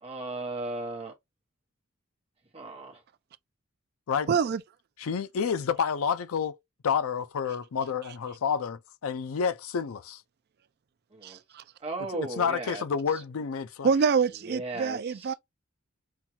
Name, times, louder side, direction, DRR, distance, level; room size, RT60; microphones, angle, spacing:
voice 1, 0.0-1.1 2.5-3.0 11.1-11.4 11.8-12.8 13.1-13.2 14.4-15.3, right 2 dB, 30° right, 1.0 m, -36 dB
voice 2, 4.3-4.6 11.2-11.6 13.8-15.3, right 6 dB, 50° right, 0.4 m, -26 dB
voice 3, 5.0-6.6 6.8-10.2 12.1-13.9, left 6 dB, 75° left, 0.5 m, -29 dB
5.6 x 2.3 x 2.7 m
head